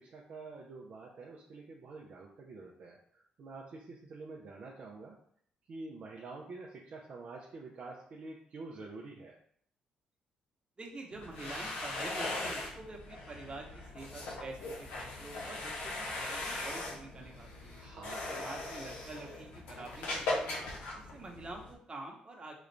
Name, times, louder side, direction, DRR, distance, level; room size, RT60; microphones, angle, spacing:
voice 1, 0.0-5.2 5.7-9.4 17.8-18.3, right 3 dB, 60° right, -1 dB, 0.6 m, -47 dB
voice 2, 10.8-17.8 18.3-20.6 20.9-22.5, right 2 dB, 35° right, 0 dB, 1.1 m, -47 dB
sound 1, 11.1-21.7, left 2 dB, 80° left, 0.8 m, -39 dB
4.0 x 2.4 x 3.3 m, 0.62 s
supercardioid pair, 55°, 3 cm